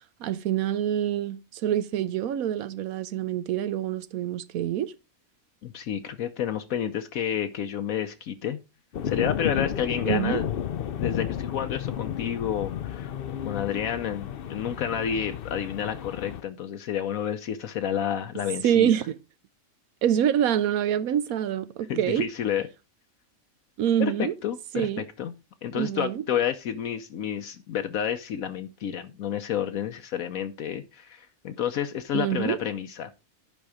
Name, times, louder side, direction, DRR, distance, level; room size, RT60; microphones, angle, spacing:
voice 1, 0.2-4.9 10.1-10.4 18.6-19.1 20.0-22.3 23.8-24.3 24.7-25.1 25.7-26.2 32.1-32.6, right 10 dB, 85° right, 1.1 m, -26 dB
voice 2, 5.6-8.6 9.0-10.4 11.0-19.0 21.9-22.6 24.0-25.3 25.6-33.1, left 9 dB, 75° left, 1.2 m, -30 dB
sound 1, 8.9-16.4, left 9 dB, 60° left, 0.6 m, -32 dB
10.5 x 5.4 x 4.9 m
omnidirectional pair, 1.5 m